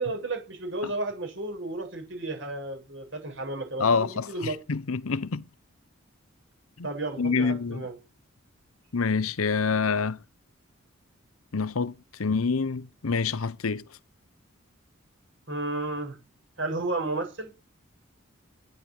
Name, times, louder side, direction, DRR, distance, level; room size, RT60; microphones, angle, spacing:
voice 1, 0.0-4.6 6.8-8.0 15.5-16.1 16.6-17.5, right 2 dB, 60° right, 8.0 m, -32 dB
voice 2, 3.8-5.5 6.8-6.9 7.2-7.9 8.9-10.2 11.5-11.9 12.2-13.8, left 5 dB, 85° left, 0.8 m, -27 dB
12.5 x 10.0 x 8.8 m
head